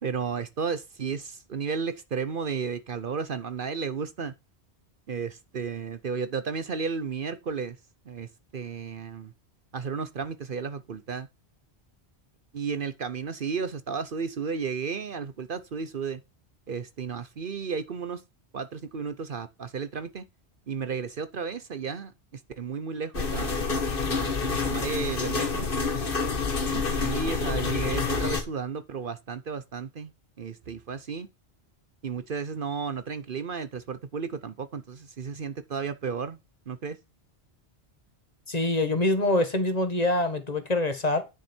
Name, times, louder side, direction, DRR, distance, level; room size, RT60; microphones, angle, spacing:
voice 1, 0.0-4.3 5.1-7.8 8.0-9.3 9.7-11.3 12.5-16.2 16.7-18.2 18.5-20.2 20.7-23.7 24.1-25.7 26.7-30.1 30.4-31.3 32.0-36.4 36.7-37.0, right 5 dB, 55° right, 0.9 m, -33 dB
sound 1, 23.1-28.4, left 4 dB, 50° left, 1.6 m, -28 dB
voice 2, 38.5-41.2, left 2 dB, 35° left, 1.6 m, -25 dB
9.9 x 6.5 x 4.4 m
omnidirectional pair, 1.1 m